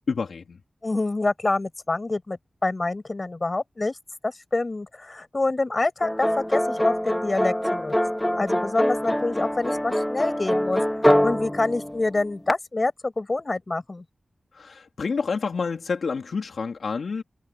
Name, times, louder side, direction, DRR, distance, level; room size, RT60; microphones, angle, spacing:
voice 1, 0.1-0.6 14.5-17.2, left 5 dB, 75° left, 3.2 m, -28 dB
voice 2, 0.8-3.9 4.2-10.8 11.2-14.0, left 2 dB, 30° left, 7.9 m, -26 dB
sound 1, 6.0-12.5, equal, 5° left, 3.5 m, -24 dB
wide cardioid pair, 125°, 0 cm